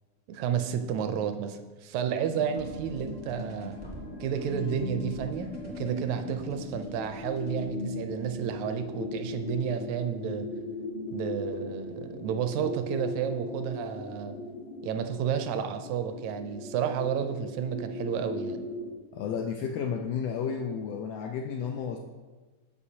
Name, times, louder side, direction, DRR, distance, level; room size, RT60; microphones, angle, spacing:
voice 1, 0.3-3.8 4.2-10.5 11.1-14.3 14.8-18.6, right 8 dB, 80° right, 8 dB, 1.8 m, -31 dB
sound 1, 2.3-18.9, left 3 dB, 65° left, 1.5 m, -38 dB
sound 2, 2.5-9.9, right 1 dB, 5° right, 0.5 m, -51 dB
voice 2, 19.1-22.0, left 7 dB, 85° left, 3 dB, 1.4 m, -32 dB
12.5 x 5.3 x 2.8 m, 1.3 s
omnidirectional pair, 3.4 m